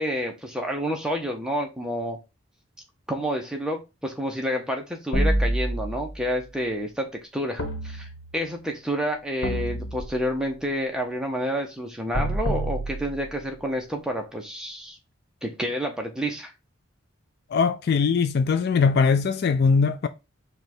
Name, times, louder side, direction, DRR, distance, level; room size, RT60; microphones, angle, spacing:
voice 1, 0.0-2.2 3.1-8.1 8.3-15.0 15.4-16.5, equal, 5° right, 0.8 m, -29 dB
sound 1, 5.1-6.2 7.6-8.6 9.4-10.5 12.1-13.6, right 1 dB, 75° left, 1.3 m, -28 dB
voice 2, 17.5-20.1, left 5 dB, 50° left, 0.4 m, -21 dB
4.9 x 2.4 x 4.2 m
head